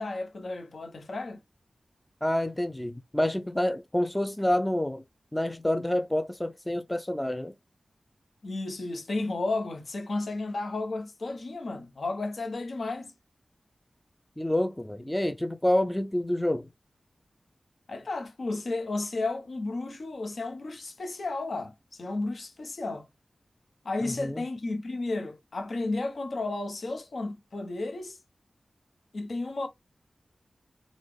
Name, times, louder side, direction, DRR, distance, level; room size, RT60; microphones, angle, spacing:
voice 1, 0.0-1.4 8.4-13.1 17.9-23.1 23.8-28.2 29.1-29.7, left 2 dB, 75° left, 1.0 m, -33 dB
voice 2, 2.2-5.0 5.3-7.5 14.4-16.7 24.0-24.4, left 1 dB, 10° left, 0.4 m, -28 dB
4.1 x 2.4 x 3.3 m
wide cardioid pair, 70°, 0 cm